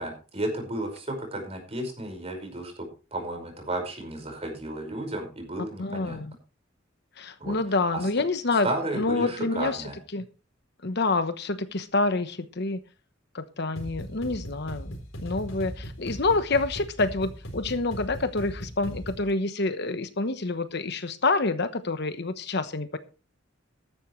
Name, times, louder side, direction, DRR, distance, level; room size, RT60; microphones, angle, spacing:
voice 1, 0.0-2.7 3.1-6.2 7.4-7.5 7.9-8.0 8.6-10.0, right 1 dB, 30° right, 4 dB, 5.3 m, -33 dB
voice 2, 5.8-6.3 7.2-8.7 8.9-9.8 10.1-10.2 10.8-12.8 13.3-14.9 15.2-23.0, left 3 dB, 55° left, 10 dB, 1.1 m, -27 dB
sound 1, 13.7-19.3, equal, 75° left, 4.2 m, -39 dB
14.0 x 12.0 x 3.2 m, 0.33 s
head